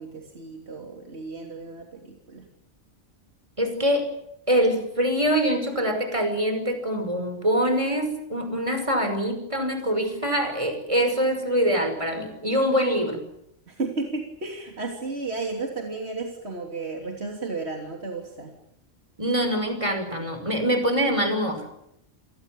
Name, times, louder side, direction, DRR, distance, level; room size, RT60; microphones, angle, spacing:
voice 1, 0.0-2.5 13.7-18.5, right 3 dB, 60° right, 2 dB, 3.4 m, -33 dB
voice 2, 3.6-4.1 4.5-13.2 19.2-21.6, equal, 25° right, 7 dB, 5.6 m, -24 dB
29.5 x 18.5 x 9.0 m, 0.79 s
omnidirectional pair, 1.2 m